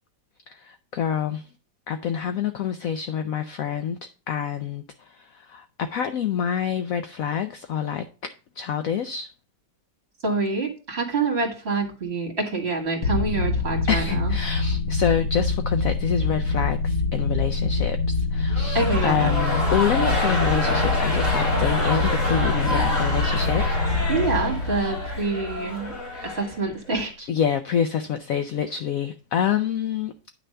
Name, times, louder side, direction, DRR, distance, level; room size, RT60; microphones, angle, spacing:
voice 1, 0.5-1.5 1.9-9.3 13.9-23.7 24.7-25.0 27.3-30.1, left 8 dB, 70° left, 0.8 m, -27 dB
voice 2, 10.2-14.3 18.7-19.3 24.1-25.9 26.2-27.3, right 3 dB, 35° right, 2.1 m, -26 dB
sound 1, 13.0-26.3, left 3 dB, 85° left, 1.7 m, -25 dB
sound 2, 18.5-26.9, left 1 dB, 50° left, 2.7 m, -28 dB
9.9 x 3.4 x 6.5 m
omnidirectional pair, 1.9 m